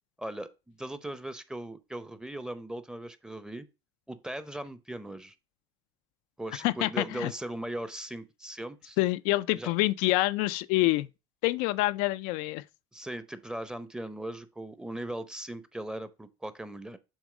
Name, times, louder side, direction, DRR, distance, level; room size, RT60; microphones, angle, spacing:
voice 1, 0.2-3.7 4.1-5.3 6.4-9.0 9.6-9.7 12.9-17.0, right 1 dB, 5° right, 0.8 m, -39 dB
voice 2, 6.6-7.3 9.0-11.1 11.4-12.6, left 19 dB, 75° left, 0.4 m, -27 dB
7.2 x 3.1 x 4.9 m
supercardioid pair, 95°, 14 cm